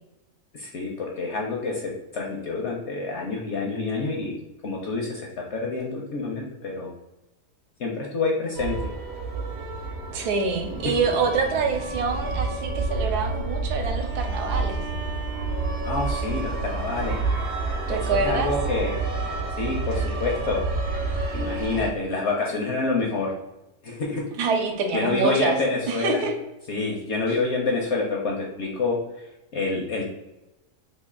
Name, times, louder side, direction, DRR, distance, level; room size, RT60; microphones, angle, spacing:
voice 1, 0.5-4.3 4.6-6.9 7.8-8.9 10.8-10.9 15.8-17.2 17.9-19.0 19.6-20.6 21.3-23.3 23.8-24.2 24.9-26.2 26.7-29.2 29.5-30.1, left 3 dB, 65° left, -1 dB, 0.7 m, -27 dB
sound 1, 8.5-21.9, right 3 dB, 55° right, 0.8 m, -29 dB
voice 2, 10.1-14.8 17.9-18.5 24.4-25.6 25.9-26.3, right 4 dB, 80° right, 4 dB, 1.2 m, -26 dB
3.1 x 2.5 x 3.6 m, 0.99 s
omnidirectional pair, 1.7 m